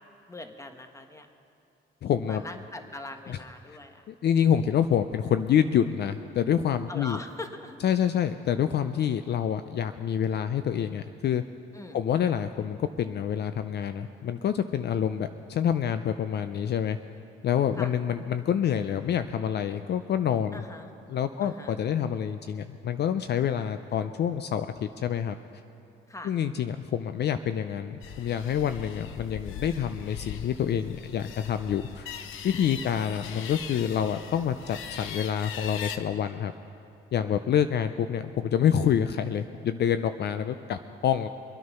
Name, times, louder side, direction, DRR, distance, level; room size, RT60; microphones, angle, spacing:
voice 1, 0.3-1.3 2.3-4.0 6.9-7.8 11.7-12.0 17.8-17.9 20.5-20.9 21.4-21.8 26.1-26.3 32.6-33.5, left 2 dB, 15° left, 6 dB, 1.3 m, -42 dB
voice 2, 2.0-2.4 3.3-3.4 4.1-7.2 7.8-11.4 11.9-17.0 17.4-20.6 21.1-25.4 26.2-32.1 32.4-36.5 37.1-41.3, left 9 dB, 55° left, 10 dB, 0.5 m, -27 dB
sound 1, 28.0-36.0, left 8 dB, 85° left, 0.8 m, -40 dB
24.0 x 9.5 x 5.6 m, 2.7 s
cardioid pair, 90°, 20 cm